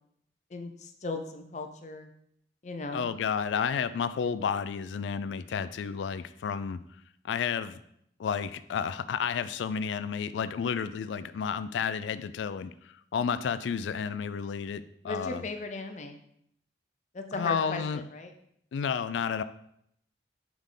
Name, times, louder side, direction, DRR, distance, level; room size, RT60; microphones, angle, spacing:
voice 1, 0.5-2.1 2.6-3.1 15.0-16.2 17.1-18.3, left 3 dB, 40° left, 6 dB, 0.5 m, -37 dB
voice 2, 2.9-6.8 7.2-7.8 8.2-15.4 17.3-18.0 18.7-19.4, left 6 dB, 90° left, 14 dB, 0.3 m, -31 dB
7.2 x 3.6 x 3.8 m, 0.72 s
head